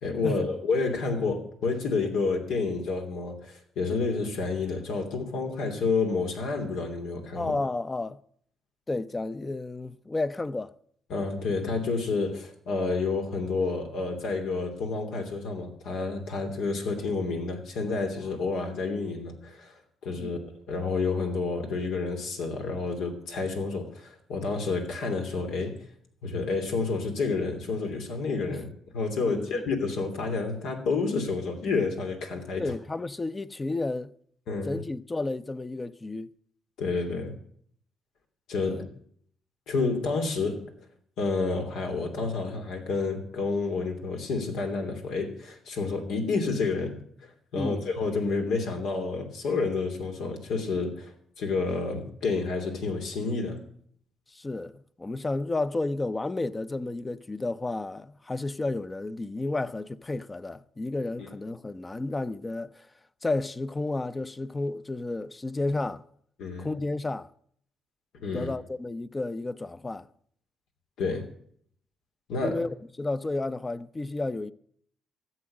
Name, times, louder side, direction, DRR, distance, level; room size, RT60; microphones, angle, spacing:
voice 1, 0.0-7.5 11.1-20.4 20.7-25.8 26.2-28.7 28.9-32.6 34.5-34.8 36.8-37.4 38.5-38.8 39.7-40.6 41.2-47.0 47.2-53.7 66.4-66.7 68.2-68.5 71.0-71.3 72.3-72.6, left 4 dB, 80° left, 3.0 m, -29 dB
voice 2, 7.3-8.2 8.9-10.7 20.2-20.4 28.5-28.6 29.3-29.7 32.6-34.1 34.6-36.3 38.6-38.8 47.5-47.8 54.3-62.9 63.2-66.0 66.6-67.3 68.3-70.1 72.4-74.5, left 2 dB, 20° left, 0.6 m, -32 dB
14.0 x 7.8 x 8.7 m
cardioid pair, 90°, 0 cm